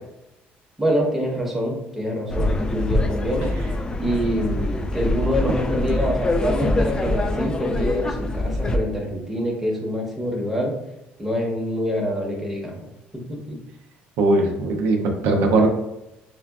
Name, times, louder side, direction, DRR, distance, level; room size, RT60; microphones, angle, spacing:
voice 1, 0.8-3.5 4.0-10.7 11.2-12.8 13.1-13.6, equal, 5° right, -2 dB, 0.9 m, -26 dB
sound 1, 2.3-8.8, left 2 dB, 20° left, 0.3 m, -24 dB
voice 2, 14.2-15.7, right 2 dB, 85° right, 3 dB, 0.6 m, -19 dB
5.6 x 2.3 x 2.3 m, 0.90 s
cardioid pair, 125°, 4 cm